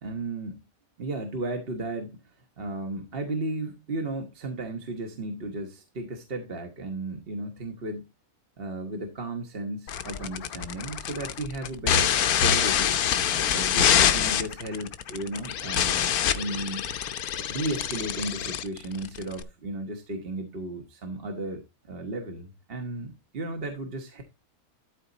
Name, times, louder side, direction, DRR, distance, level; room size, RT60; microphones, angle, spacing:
voice 1, 0.0-0.6 1.0-8.0 8.6-12.1 12.4-13.0 13.5-16.9 17.5-24.2, right 2 dB, 45° right, 1.3 m, -34 dB
sound 1, 9.9-19.4, left 9 dB, 90° left, 1.3 m, -25 dB
12.5 x 4.2 x 3.9 m
omnidirectional pair, 1.5 m